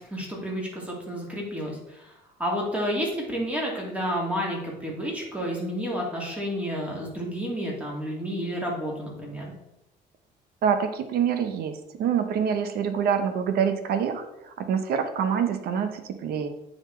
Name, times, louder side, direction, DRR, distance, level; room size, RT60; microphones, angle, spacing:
voice 1, 0.0-9.5, equal, 5° right, -2 dB, 2.4 m, -30 dB
voice 2, 10.6-16.5, right 7 dB, 70° right, 8 dB, 0.9 m, -26 dB
8.9 x 4.1 x 4.4 m, 0.87 s
cardioid pair, 110°, 17 cm